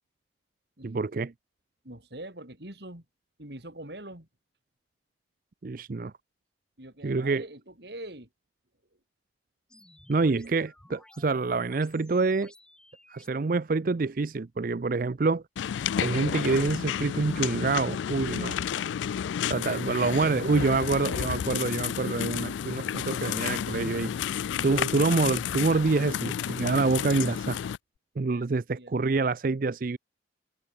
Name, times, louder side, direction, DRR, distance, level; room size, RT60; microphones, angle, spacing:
voice 1, 0.8-1.3 5.6-6.1 7.0-7.4 10.1-12.5 13.1-15.4 16.0-18.6 19.5-24.1 24.6-27.6 28.2-30.0, right 3 dB, 50° right, 0.5 m, -26 dB
voice 2, 1.8-3.0 3.4-4.3 6.8-8.3 10.6-10.7 18.7-19.0 19.6-20.8 28.3-28.4 28.7-28.9, right 1 dB, 65° right, 4.6 m, -43 dB
sound 1, 9.7-13.3, left 1 dB, 5° left, 2.2 m, -55 dB
sound 2, 15.6-27.8, left 8 dB, 85° left, 0.3 m, -31 dB
head